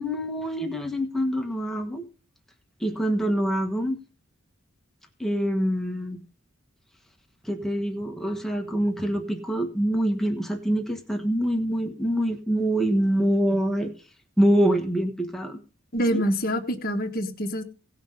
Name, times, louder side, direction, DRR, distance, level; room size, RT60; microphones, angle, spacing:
voice 1, 0.0-2.1 2.8-4.0 5.2-6.2 7.4-13.9 14.4-15.6 16.1-16.2, equal, ahead, 3 dB, 1.2 m, -25 dB
voice 2, 15.9-17.6, equal, 45° left, 5 dB, 1.4 m, -26 dB
17.5 x 5.9 x 5.5 m, 0.35 s
head